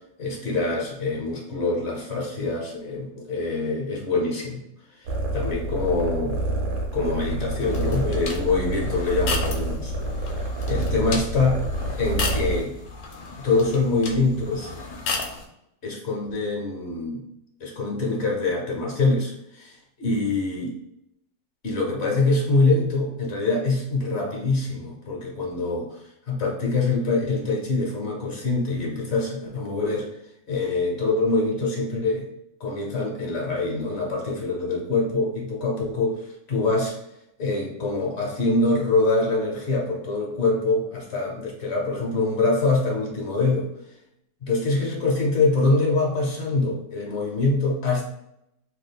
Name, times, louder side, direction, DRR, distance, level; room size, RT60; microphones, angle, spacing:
voice 1, 0.2-4.6 4.9-6.4 6.9-9.9 10.2-10.3 10.7-11.6 12.0-12.7 13.4-14.7 15.8-17.2 17.6-20.7 21.6-30.2 30.5-32.3 32.6-37.0 37.4-43.7 44.4-48.0, left 3 dB, 50° left, -2 dB, 1.0 m, -24 dB
sound 1, 5.1-12.6, right 1 dB, 75° right, 1.1 m, -28 dB
sound 2, 7.6-15.5, left 4 dB, 80° left, 1.1 m, -34 dB
3.6 x 2.8 x 2.3 m, 0.80 s
omnidirectional pair, 1.6 m